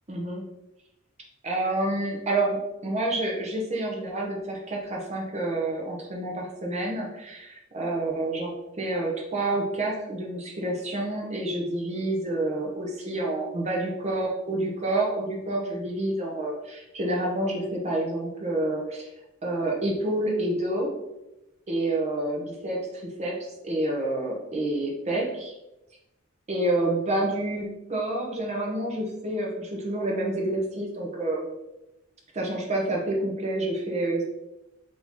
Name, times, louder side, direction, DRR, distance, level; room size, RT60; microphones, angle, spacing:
voice 1, 0.1-0.4 1.4-19.1 19.4-20.9 21.7-25.5 26.5-31.5 32.3-34.2, right 1 dB, 35° right, -1 dB, 0.7 m, -28 dB
3.5 x 2.7 x 3.0 m, 0.93 s
head